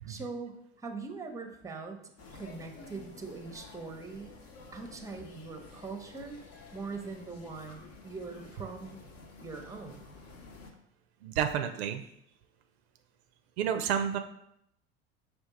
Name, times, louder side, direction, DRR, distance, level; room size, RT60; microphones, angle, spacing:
voice 1, 0.1-4.4 4.7-6.4 6.7-9.0 9.4-10.1, right 4 dB, 10° right, 4 dB, 0.7 m, -42 dB
sound 1, 2.2-10.7, left 3 dB, 50° left, 0.9 m, -51 dB
voice 2, 11.2-12.0 13.6-14.2, right 8 dB, 75° right, 7 dB, 0.5 m, -30 dB
5.1 x 2.4 x 3.7 m, 0.75 s
hypercardioid pair, 70°, 33 cm